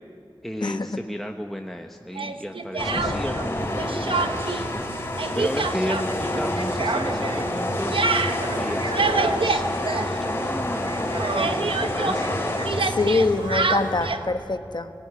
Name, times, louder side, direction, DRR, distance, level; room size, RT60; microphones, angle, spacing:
voice 1, 0.4-9.6 9.9-12.3, equal, 5° left, 3 dB, 1.1 m, -34 dB
Speech, 2.1-3.5 3.8-4.6 4.9-10.6 10.9-14.3, right 3 dB, 85° right, 1.0 m, -27 dB
sound 1, 2.8-14.2, left 1 dB, 30° left, 4.2 m, -28 dB
sound 2, 3.6-14.1, right 3 dB, 60° right, 0.9 m, -41 dB
voice 2, 12.9-14.9, left 3 dB, 55° left, 8 dB, 1.1 m, -24 dB
20.0 x 17.5 x 9.6 m, 2.6 s
wide cardioid pair, 60°, 9 cm